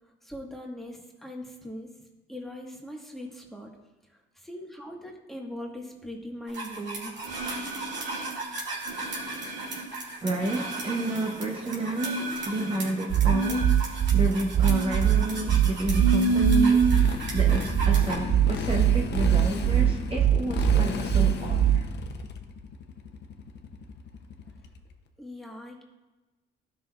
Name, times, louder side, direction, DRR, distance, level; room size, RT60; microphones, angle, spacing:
voice 1, 0.2-1.9 2.3-3.7 4.1-7.3 25.2-25.8, equal, ahead, 0 dB, 1.5 m, -40 dB
sound 1, 6.5-18.2, right 3 dB, 65° right, 2.2 m, -30 dB
voice 2, 10.2-21.8, right 1 dB, 30° right, -1 dB, 1.1 m, -30 dB
sound 2, 13.1-22.1, right 10 dB, 45° right, 0.4 m, -22 dB
Motorcycle, 16.3-24.9, left 5 dB, 60° left, 0.8 m, -35 dB
13.0 x 5.7 x 2.5 m, 1.2 s
cardioid pair, 90°, 20 cm